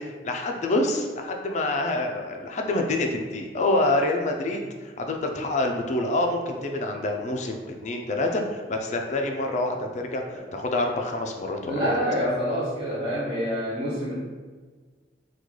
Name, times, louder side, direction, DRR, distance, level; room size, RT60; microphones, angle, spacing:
voice 1, 0.0-11.7, left 2 dB, 40° left, 3 dB, 0.4 m, -27 dB
voice 2, 11.6-14.1, equal, 30° right, -10 dB, 0.7 m, -27 dB
3.6 x 2.3 x 3.1 m, 1.5 s
head